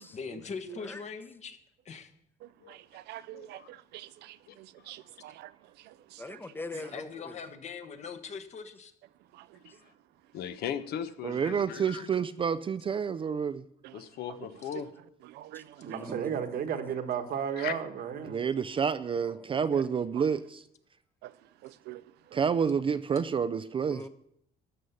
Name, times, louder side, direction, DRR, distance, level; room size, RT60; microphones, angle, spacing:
voice 1, 0.1-1.6 1.8-2.1 6.7-8.9, left 5 dB, 45° left, 1.2 m, -41 dB
voice 2, 2.4-5.5 5.8-6.4 9.3-9.6 13.8-14.0 14.3-14.4 14.7-14.8 15.3-16.0 19.7-19.8 21.2-21.3 21.6-22.0, right 15 dB, 80° right, 0.5 m, -47 dB
voice 3, 3.3-3.7 4.5-4.6 4.9-5.0 9.6-9.7 10.3-12.1 13.9-14.9 17.6-17.7, left 9 dB, 70° left, 1.0 m, -38 dB
voice 4, 6.2-7.4 15.5-15.6 15.9-16.6 19.1-19.7 23.9-24.1, left 2 dB, 10° left, 0.8 m, -43 dB
voice 5, 11.2-13.6 16.1-16.3 18.2-20.6 22.3-24.0, right 6 dB, 30° right, 0.4 m, -29 dB
voice 6, 15.8-18.4, right 8 dB, 60° right, 1.4 m, -33 dB
13.0 x 5.6 x 7.9 m
cardioid pair, 110°, 17 cm